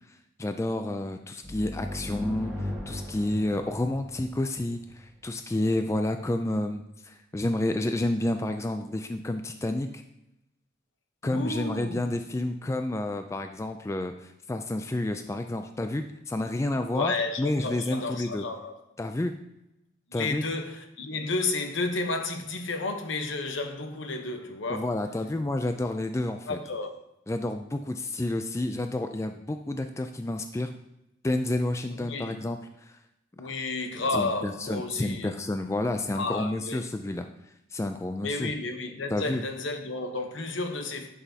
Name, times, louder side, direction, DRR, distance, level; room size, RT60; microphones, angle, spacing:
voice 1, 0.4-9.9 11.2-17.1 17.4-18.4 19.0-19.4 20.1-20.4 24.7-26.6 27.3-30.7 31.2-33.0 34.1-37.3 37.7-38.5 39.1-39.4, left 1 dB, 15° left, 0.3 m, -30 dB
sound 1, 1.4-5.0, left 1 dB, ahead, 1.4 m, -37 dB
voice 2, 11.2-12.1 16.9-18.8 20.1-24.9 26.5-27.0 32.0-32.4 33.4-35.3 36.1-36.9 38.2-41.1, left 3 dB, 75° left, 1.0 m, -32 dB
11.0 x 6.1 x 2.8 m
head